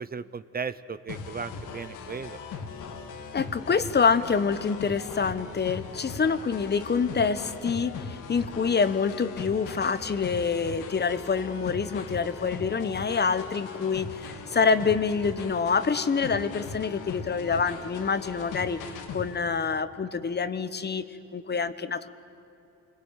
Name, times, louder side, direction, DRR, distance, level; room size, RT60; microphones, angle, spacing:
voice 1, 0.0-2.4, right 5 dB, 30° right, 14 dB, 0.8 m, -36 dB
sound 1, 1.1-19.4, left 5 dB, 90° left, 2.2 m, -39 dB
voice 2, 3.3-18.8 19.1-21.0 21.3-22.1, left 5 dB, 35° left, 13 dB, 1.2 m, -26 dB
28.5 x 21.5 x 9.3 m, 2.7 s
cardioid pair, 90°, 30 cm